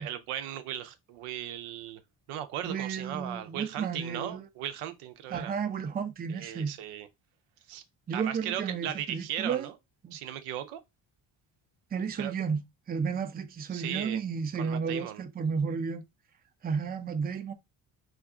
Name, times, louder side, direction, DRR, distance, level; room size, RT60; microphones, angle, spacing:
voice 1, 0.0-2.0 2.3-5.5 6.3-7.1 7.7-7.8 8.1-9.8 10.1-10.8 12.2-12.3 13.7-14.2 14.6-15.2, right 11 dB, 90° right, 0.6 m, -37 dB
voice 2, 2.6-4.5 5.3-6.7 8.1-9.7 10.0-10.2 11.9-12.6 12.9-16.0 16.6-17.5, right 6 dB, 20° right, 0.4 m, -32 dB
2.5 x 2.4 x 3.6 m
supercardioid pair, 70°, 49 cm